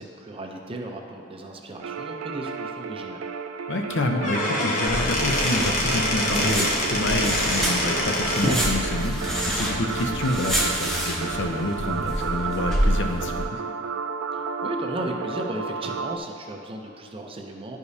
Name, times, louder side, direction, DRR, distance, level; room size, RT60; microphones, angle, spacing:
voice 1, 0.0-3.2 14.3-17.8, right 1 dB, 25° right, 2 dB, 0.5 m, -35 dB
sound 1, 1.8-16.2, right 5 dB, 80° right, 0.3 m, -33 dB
voice 2, 3.7-13.6, left 2 dB, 60° left, 3 dB, 0.6 m, -28 dB
Squeak / Wood, 4.1-8.6, left 1 dB, 35° left, 0.9 m, -25 dB
sound 2, 4.9-13.4, equal, ahead, 0.8 m, -28 dB
11.0 x 5.0 x 2.7 m, 2.5 s
head